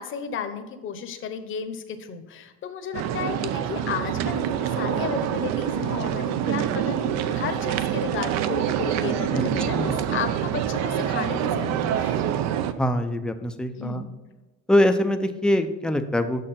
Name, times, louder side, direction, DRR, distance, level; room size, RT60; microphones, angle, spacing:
voice 1, 0.0-12.3 13.8-14.0, left 6 dB, 40° left, 9 dB, 0.9 m, -33 dB
sound 1, 2.9-12.7, right 10 dB, 60° right, 0.6 m, -26 dB
voice 2, 12.8-14.0 14.7-16.5, left 1 dB, 5° left, 7 dB, 0.4 m, -23 dB
6.6 x 6.2 x 5.7 m, 1.1 s
cardioid pair, 140°, 30 cm